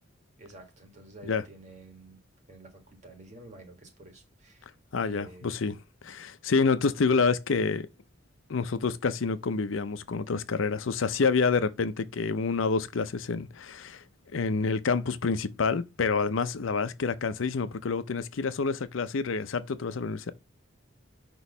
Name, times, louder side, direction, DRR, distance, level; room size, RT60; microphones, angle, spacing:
voice 1, 0.4-2.2 2.5-4.7 5.0-5.6, right 2 dB, 35° right, 1.5 m, -50 dB
voice 2, 4.9-5.7 6.0-7.9 8.5-14.0 14.3-20.3, left 4 dB, 85° left, 0.6 m, -28 dB
6.2 x 3.0 x 5.4 m
head